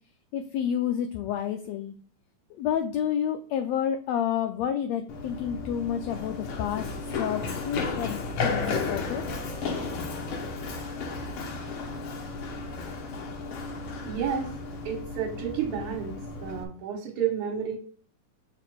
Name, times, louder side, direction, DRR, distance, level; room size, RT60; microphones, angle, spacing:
voice 1, 0.3-1.9 2.6-6.9 7.1-9.2, left 9 dB, 80° left, 7 dB, 1.6 m, -29 dB
Run, 5.1-16.6, left 4 dB, 60° left, 1.5 m, -33 dB
voice 2, 14.0-14.5 14.9-16.1 16.4-17.8, right 8 dB, 75° right, 0 dB, 2.4 m, -30 dB
7.0 x 4.8 x 4.5 m, 0.43 s
omnidirectional pair, 3.6 m